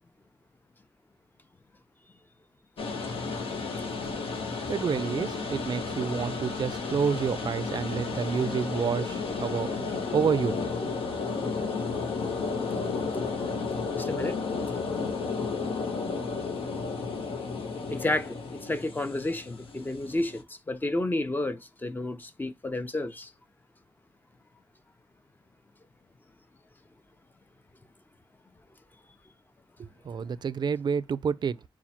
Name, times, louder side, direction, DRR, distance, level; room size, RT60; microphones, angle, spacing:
sound 1, 2.8-20.4, left 4 dB, 90° left, 0.9 m, -32 dB
voice 1, 4.7-9.7 10.1-10.6 29.8-31.6, right 6 dB, 55° right, 0.4 m, -29 dB
voice 2, 12.8-13.3 14.0-14.4 17.9-23.3, left 2 dB, 20° left, 0.6 m, -31 dB
4.3 x 2.3 x 4.2 m
wide cardioid pair, 100°, 9 cm